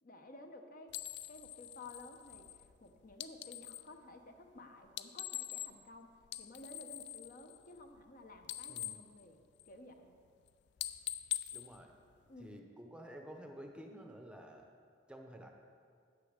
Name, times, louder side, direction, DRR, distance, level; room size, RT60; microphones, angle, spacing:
voice 1, 0.0-1.0 1.3-6.1 6.4-10.1 12.3-12.6, left 2 dB, 50° left, 5 dB, 0.8 m, -54 dB
sound 1, 0.9-3.9 4.8-5.9 6.2-8.1 8.4-9.9 10.3-10.5 10.8-12.6, left 13 dB, 65° left, 0.4 m, -44 dB
voice 2, 8.7-9.1 11.5-11.9 12.4-14.7 15.1-15.5, equal, 5° right, 2 dB, 0.7 m, -51 dB
8.7 x 6.6 x 6.6 m, 2.2 s
head